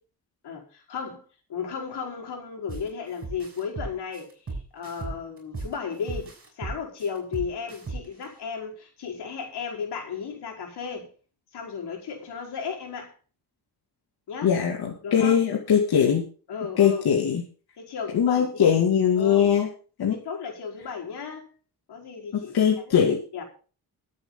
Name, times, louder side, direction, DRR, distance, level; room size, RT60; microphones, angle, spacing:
voice 1, 0.4-1.2 1.5-11.1 11.5-13.1 14.3-14.5 15.0-15.4 16.5-17.1 17.8-18.8 19.2-19.5 20.1-21.5 21.9-23.0 23.3-23.4, left 6 dB, 85° left, 4.8 m, -35 dB
sound 1, 2.7-2.9 3.2-5.7 6.1-8.2, right 3 dB, 35° right, 6.0 m, -35 dB
voice 2, 14.4-16.2 16.8-17.4 18.1-19.7 20.0-20.1 22.5-23.2, left 8 dB, 70° left, 2.7 m, -21 dB
23.0 x 8.5 x 4.0 m
wide cardioid pair, 140°, 38 cm